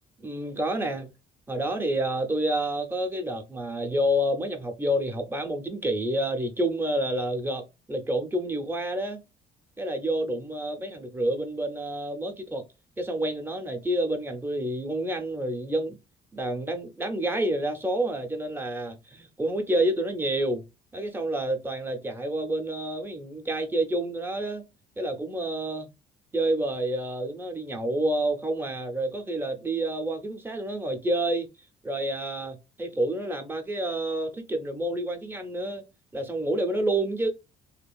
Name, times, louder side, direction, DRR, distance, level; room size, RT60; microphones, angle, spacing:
voice 1, 0.2-1.1 1.5-9.2 9.8-12.6 13.0-16.0 16.3-20.6 20.9-24.6 25.0-25.9 26.3-31.5 31.8-35.8 36.1-37.3, right 1 dB, 10° right, 0.6 m, -28 dB
2.8 x 2.4 x 2.2 m
cardioid pair, 110°, 17 cm